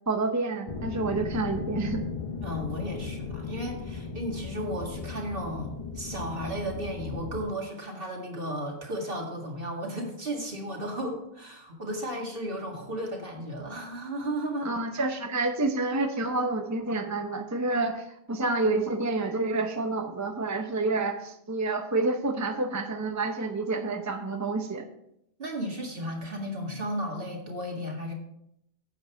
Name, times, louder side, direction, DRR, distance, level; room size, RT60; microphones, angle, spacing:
voice 1, 0.1-2.0 14.6-24.8, right 3 dB, 20° right, 5 dB, 0.7 m, -28 dB
sound 1, 0.7-7.5, left 5 dB, 35° left, 0.8 m, -36 dB
voice 2, 2.4-14.7 25.4-28.1, equal, 60° right, 0 dB, 2.2 m, -34 dB
9.4 x 7.9 x 4.6 m, 0.76 s
omnidirectional pair, 1.1 m